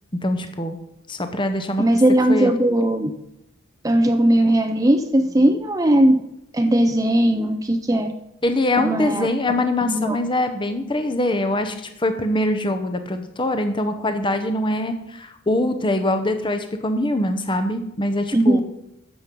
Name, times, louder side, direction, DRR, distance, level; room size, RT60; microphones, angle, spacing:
voice 1, 0.1-0.8 1.1-2.0 2.3-2.5 8.4-18.6, left 1 dB, 25° left, 7 dB, 0.8 m, -23 dB
voice 2, 1.8-3.1 3.8-6.2 6.5-8.1 8.8-9.3 9.8-10.2 18.3-18.6, right 1 dB, 15° right, 8 dB, 0.5 m, -18 dB
12.0 x 7.6 x 5.4 m, 0.85 s
head